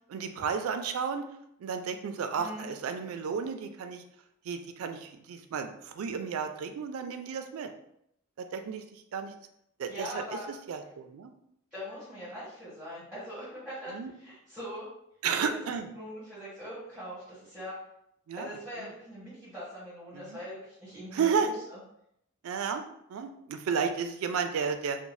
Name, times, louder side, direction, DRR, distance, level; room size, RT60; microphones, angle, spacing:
voice 1, 0.1-1.2 1.6-4.0 4.5-7.7 8.5-8.8 9.1-9.3 9.8-10.2 10.7-11.3 13.9-14.1 15.2-15.9 18.3-18.5 20.1-20.4 21.1-21.5 22.4-22.8 23.1-25.0, right 6 dB, 85° right, 7 dB, 0.3 m, -32 dB
voice 2, 2.4-2.7 9.9-10.5 11.7-14.9 15.4-15.5 15.8-17.8 18.4-21.8, equal, 5° right, -10 dB, 1.0 m, -41 dB
2.6 x 2.1 x 3.1 m, 0.75 s
head